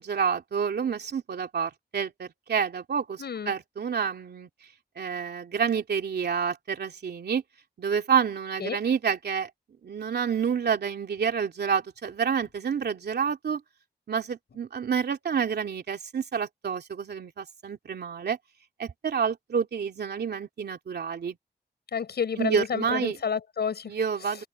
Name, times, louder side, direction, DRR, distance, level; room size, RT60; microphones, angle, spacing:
voice 1, 0.0-4.5 5.0-7.4 7.8-9.5 9.8-13.6 14.1-18.4 18.8-21.4 22.4-23.2 23.9-24.4, right 7 dB, 80° right, 2.8 m, -28 dB
voice 2, 3.2-3.5 8.6-8.8 21.9-23.9, left 7 dB, 90° left, 7.8 m, -30 dB
wide cardioid pair, 170°, 16 cm